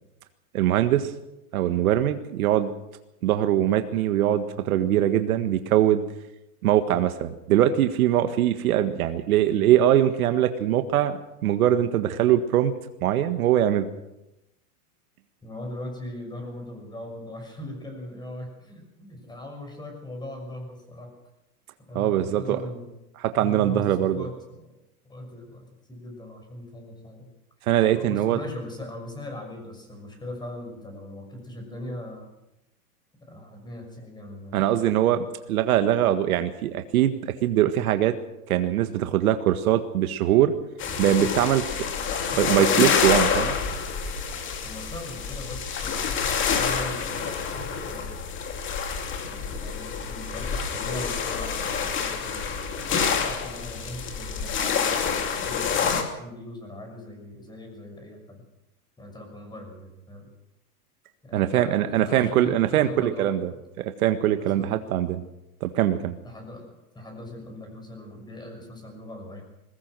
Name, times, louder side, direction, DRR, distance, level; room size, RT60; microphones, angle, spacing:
voice 1, 0.5-1.1 1.5-2.7 3.2-6.0 6.6-12.7 13.0-13.9 22.0-22.6 23.2-24.3 27.7-28.4 34.5-38.2 38.5-40.5 41.0-41.8 42.4-43.5 61.3-63.5 63.8-65.2 65.6-66.2, right 11 dB, 70° right, 9 dB, 1.7 m, -22 dB
voice 2, 15.4-21.1 21.9-22.9 23.4-24.8 25.0-27.3 27.9-32.3 33.2-34.6 44.6-47.2 47.9-48.4 49.2-58.4 59.0-60.3 61.2-63.6 64.4-64.8 66.2-69.4, left 1 dB, 10° left, 3 dB, 6.2 m, -40 dB
sound 1, 40.8-56.0, left 6 dB, 25° left, 2.7 m, -27 dB
22.0 x 19.0 x 6.3 m, 0.91 s
supercardioid pair, 140°, 45 cm